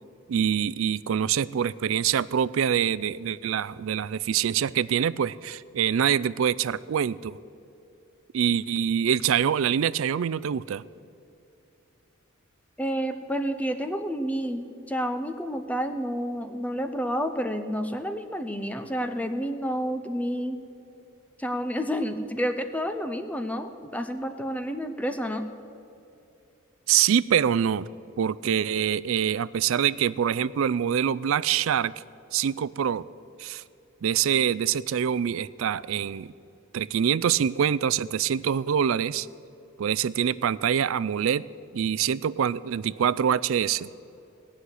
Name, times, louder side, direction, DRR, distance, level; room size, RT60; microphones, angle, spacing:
voice 1, 0.3-7.4 8.3-10.8 26.9-27.9 28.2-31.9 32.3-33.1 33.4-33.6 34.0-36.3 36.7-39.3 39.8-41.4 41.7-43.9, right 8 dB, 70° right, 19 dB, 0.4 m, -25 dB
voice 2, 12.8-20.6 21.4-25.4, equal, 5° left, 8 dB, 0.6 m, -30 dB
18.0 x 6.4 x 9.7 m, 2.7 s
head